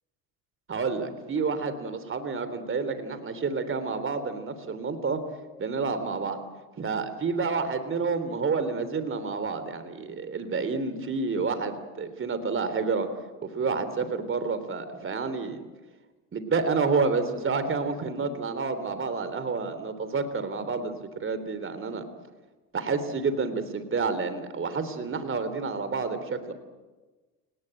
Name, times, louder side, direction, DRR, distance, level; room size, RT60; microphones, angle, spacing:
voice 1, 0.7-5.2 5.6-6.4 6.8-13.1 13.4-15.6 16.3-22.0 22.7-26.5, right 4 dB, 25° right, 11 dB, 3.4 m, -29 dB
29.0 x 19.0 x 9.0 m, 1.2 s
supercardioid pair, 95°, 45 cm